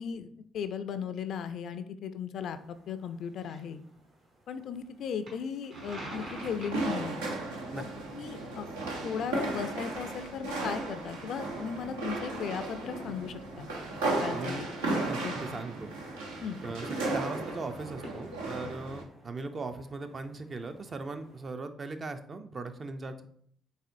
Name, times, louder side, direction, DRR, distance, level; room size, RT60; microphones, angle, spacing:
voice 1, 0.0-3.8 4.5-7.2 7.7-7.8 8.1-8.7 9.0-13.7 14.1-15.4 16.4-16.6 18.6-18.7, left 7 dB, 65° left, 11 dB, 0.3 m, -37 dB
sound 1, 2.4-21.5, right 1 dB, 65° right, 1.5 m, -51 dB
sound 2, 5.7-19.0, right 2 dB, 90° right, 0.6 m, -35 dB
voice 2, 14.3-14.7 15.1-15.9 16.6-23.3, right 3 dB, 40° right, 8 dB, 0.5 m, -39 dB
4.1 x 3.6 x 2.6 m, 0.62 s
hypercardioid pair, 50°, 0 cm